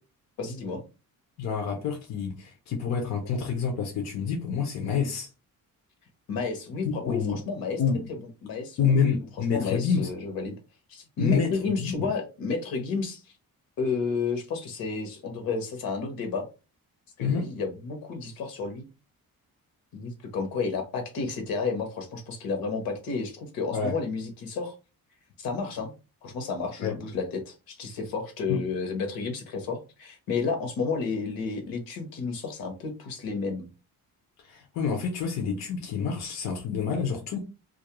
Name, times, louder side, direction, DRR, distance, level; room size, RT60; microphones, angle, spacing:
voice 1, 0.4-0.8 6.3-7.8 8.1-9.2 9.5-10.5 10.9-13.2 13.8-16.5 17.2-18.9 19.9-24.7 25.4-25.9 26.2-33.7, left 4 dB, 75° left, 0.9 m, -31 dB
voice 2, 1.4-5.3 6.8-7.4 7.8-8.0 8.8-10.1 11.2-11.5 11.8-12.1 17.2-17.5 23.7-23.9 26.8-27.0 28.5-28.6 34.4-37.4, left 6 dB, 50° left, 0.5 m, -28 dB
2.4 x 2.0 x 2.8 m
cardioid pair, 170°, 35 cm